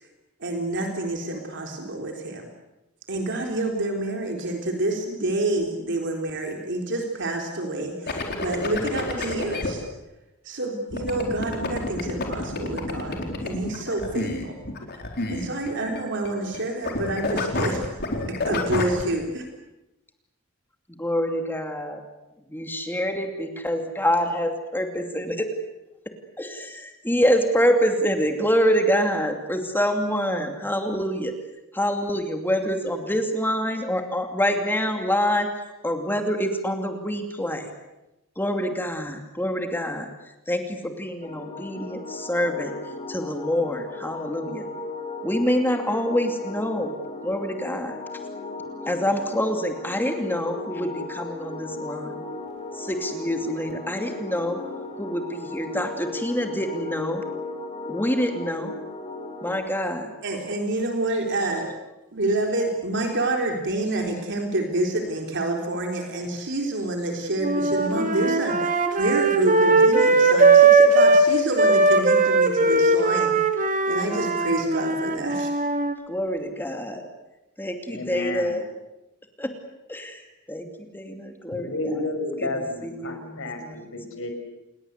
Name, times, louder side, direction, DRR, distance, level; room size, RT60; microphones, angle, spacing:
voice 1, 0.4-2.5 3.1-9.8 10.4-14.6 15.3-17.9 18.2-19.5 60.2-61.7 62.1-68.6 68.9-73.3 73.9-75.5, right 2 dB, 55° right, 2 dB, 3.8 m, -28 dB
sound 1, 8.1-9.7 10.9-16.6 16.8-19.0, left 2 dB, 50° left, 4.3 m, -29 dB
voice 2, 21.0-22.0 22.5-25.5 26.4-31.3 31.7-35.5 35.8-37.7 38.4-40.1 40.5-42.7 43.1-44.6 45.2-46.9 47.2-48.0 48.9-52.1 52.7-54.6 55.0-57.2 57.9-58.7 59.4-60.1 76.1-77.0 77.6-78.6 79.4-79.5 79.9-80.2 80.5-80.7 80.9-81.9 82.8-83.9, equal, 10° left, 5 dB, 2.6 m, -26 dB
sound 2, 41.2-59.6, left 3 dB, 30° left, 4.6 m, -36 dB
sound 3, 67.4-71.3 71.5-75.9, right 3 dB, 35° right, 2.6 m, -19 dB
voice 3, 77.8-78.6 81.5-84.3, left 2 dB, 65° left, 6 dB, 5.7 m, -31 dB
28.5 x 21.5 x 8.2 m, 0.96 s
head